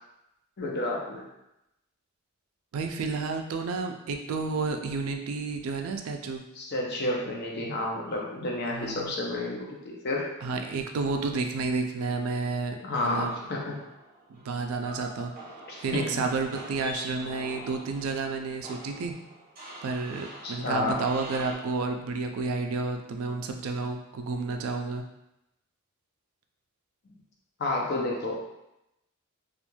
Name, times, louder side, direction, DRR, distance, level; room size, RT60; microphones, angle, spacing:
voice 1, 0.6-1.2 6.6-10.3 12.8-13.8 15.7-16.2 20.4-21.0 27.6-28.4, left 2 dB, 50° left, -2 dB, 0.5 m, -30 dB
voice 2, 2.7-6.4 8.7-9.1 10.4-12.8 13.0-13.3 14.3-15.3 15.8-19.1 19.8-25.0, right 4 dB, 75° right, 5 dB, 0.3 m, -31 dB
sound 1, 12.9-21.5, right 1 dB, 45° right, 0.9 m, -45 dB
3.0 x 2.4 x 2.2 m, 0.88 s
head